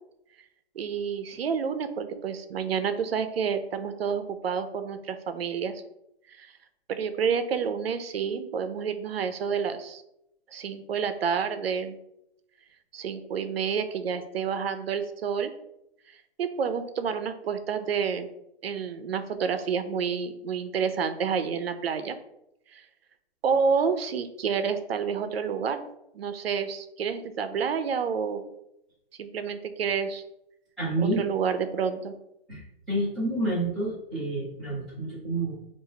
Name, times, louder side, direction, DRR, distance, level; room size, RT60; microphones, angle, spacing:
voice 1, 0.8-5.8 6.4-6.5 6.9-10.0 10.5-12.0 12.9-15.5 16.4-18.3 18.6-22.2 22.7-22.8 23.4-25.8 26.1-28.4 29.2-30.2 31.0-32.1, right 6 dB, 70° right, 9 dB, 0.6 m, -29 dB
voice 2, 30.8-31.2 32.5-35.5, right 2 dB, ahead, -13 dB, 0.6 m, -29 dB
4.1 x 2.6 x 3.9 m, 0.82 s
hypercardioid pair, 175°, 32 cm